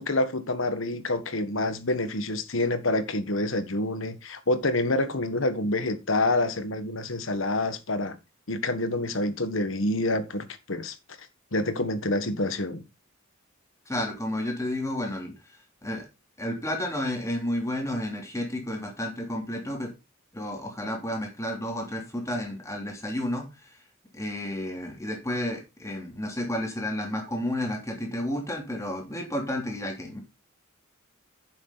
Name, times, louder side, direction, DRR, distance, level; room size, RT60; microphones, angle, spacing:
voice 1, 0.0-8.2 8.5-10.9 11.5-12.8, left 2 dB, 70° left, 1.5 m, -27 dB
voice 2, 13.9-15.3 15.8-16.1 16.4-19.9 20.3-23.4 24.1-30.2, left 1 dB, 15° left, 3.1 m, -31 dB
10.0 x 7.4 x 4.0 m
head